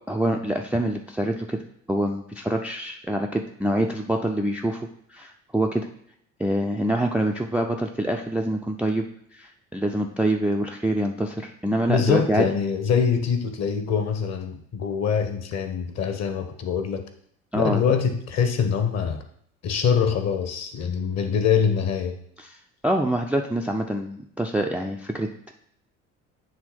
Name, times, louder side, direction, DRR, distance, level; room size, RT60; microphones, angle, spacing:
voice 1, 0.1-1.6 1.9-5.9 6.4-9.1 9.3-12.5 17.5-17.8 22.8-25.5, right 1 dB, 5° right, 2 dB, 0.4 m, -25 dB
voice 2, 11.9-17.0 17.5-19.2 19.6-22.2, left 6 dB, 40° left, 7 dB, 1.0 m, -24 dB
8.6 x 3.3 x 4.8 m, 0.67 s
figure-of-eight pair, 60°, 42 cm